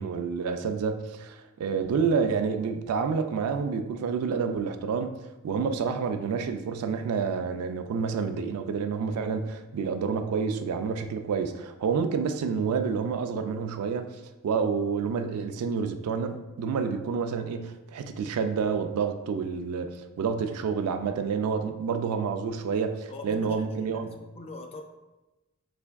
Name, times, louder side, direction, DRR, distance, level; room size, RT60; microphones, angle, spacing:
voice 1, 0.0-5.2 5.4-14.1 14.4-24.1, right 5 dB, 85° right, 9 dB, 0.3 m, -29 dB
voice 2, 23.1-24.8, left 3 dB, 25° left, 4 dB, 0.3 m, -43 dB
3.4 x 3.3 x 2.2 m, 1.0 s
head